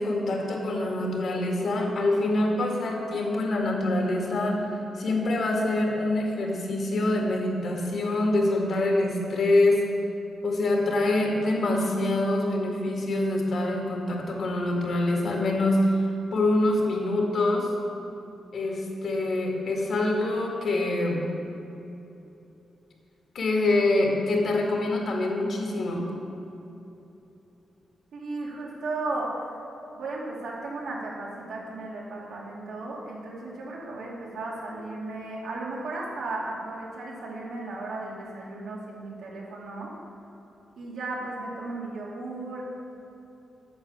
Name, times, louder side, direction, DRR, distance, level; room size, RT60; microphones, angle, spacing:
voice 1, 0.0-4.6 5.0-9.8 10.4-16.0 16.3-17.7 18.5-21.2 23.3-26.1, left 2 dB, 60° left, 0 dB, 2.1 m, -25 dB
voice 2, 28.1-29.5 29.9-39.9 40.8-42.6, right 2 dB, 85° right, -4 dB, 2.5 m, -35 dB
8.7 x 6.9 x 7.3 m, 3.0 s
cardioid pair, 120°, 0 cm